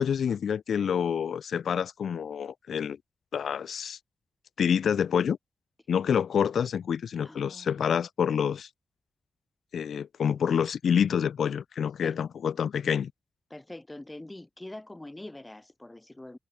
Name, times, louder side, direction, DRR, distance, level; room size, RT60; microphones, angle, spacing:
voice 1, 0.0-3.0 3.3-4.0 4.6-5.4 5.9-8.7 9.7-13.1, left 7 dB, 90° left, 0.9 m, -27 dB
voice 2, 7.2-7.9 12.0-12.2 13.5-16.4, left 1 dB, 15° left, 2.7 m, -44 dB
wide cardioid pair, 110°, 0 cm